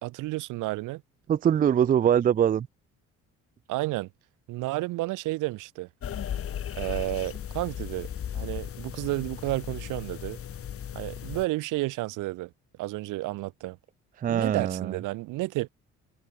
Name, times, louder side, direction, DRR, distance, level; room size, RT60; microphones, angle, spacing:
voice 1, 0.0-1.0 3.7-4.1 4.5-5.9 6.8-8.1 8.3-10.4 10.9-12.5 12.8-13.8 14.3-15.7, right 19 dB, 85° right, 1.1 m, -31 dB
voice 2, 1.3-2.7 14.2-15.0, right 9 dB, 30° right, 0.4 m, -23 dB
sound 1, 6.0-11.5, left 9 dB, 45° left, 1.1 m, -36 dB
cardioid pair, 85°, 31 cm